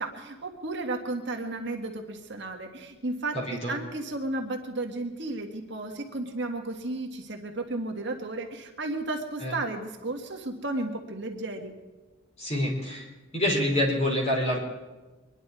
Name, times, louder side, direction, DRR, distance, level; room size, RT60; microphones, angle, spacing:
voice 1, 0.0-11.7, right 2 dB, 55° right, 2 dB, 1.7 m, -33 dB
voice 2, 3.3-3.8 9.4-9.5 12.4-13.1 13.3-14.6, left 1 dB, 30° left, -2 dB, 3.9 m, -26 dB
24.0 x 11.0 x 4.8 m, 1.2 s
head